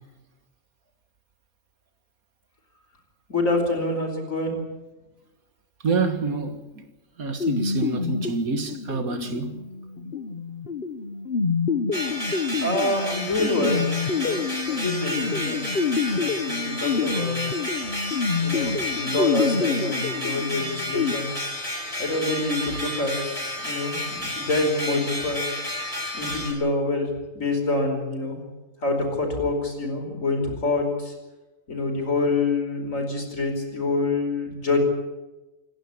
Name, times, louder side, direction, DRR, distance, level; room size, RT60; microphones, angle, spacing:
voice 1, 3.3-4.5 12.6-13.8 14.1-14.4 14.6-15.7 16.1-17.4 18.4-21.3 22.0-25.4 26.1-28.4 28.8-31.1 31.7-34.8, left 2 dB, 65° left, 5.1 m, -26 dB
voice 2, 5.8-6.8 7.2-9.6, right 4 dB, 80° right, 2.3 m, -27 dB
sound 1, 7.4-21.1, left 5 dB, 45° left, 1.3 m, -27 dB
sound 2, 11.9-26.5, left 1 dB, 25° left, 5.7 m, -31 dB
28.5 x 11.5 x 10.0 m
omnidirectional pair, 1.5 m